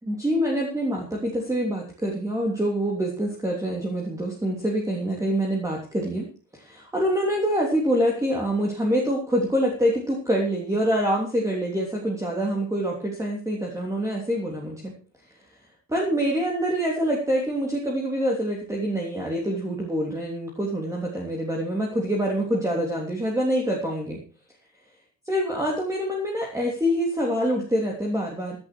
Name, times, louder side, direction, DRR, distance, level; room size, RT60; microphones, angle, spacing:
voice 1, 0.0-6.3 6.5-14.9 15.9-24.2 25.3-28.6, equal, 10° right, -2 dB, 3.3 m, -25 dB
16.0 x 11.5 x 4.6 m, 0.37 s
cardioid pair, 135°, 37 cm